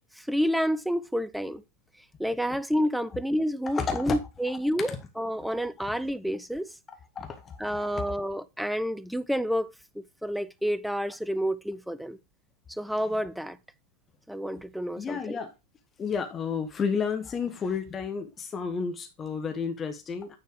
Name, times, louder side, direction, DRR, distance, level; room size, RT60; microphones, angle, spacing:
voice 1, 0.1-1.6 2.2-6.8 7.6-9.7 10.0-12.2 12.7-13.6 14.3-15.4, equal, ahead, 0.5 m, -29 dB
voice 2, 3.7-4.1 4.5-4.6 4.9-5.0 5.4-5.5 7.1-8.0 15.0-15.5 16.0-20.4, left 6 dB, 20° left, 1.1 m, -31 dB
9.3 x 4.5 x 4.7 m
figure-of-eight pair, 90°, 0 cm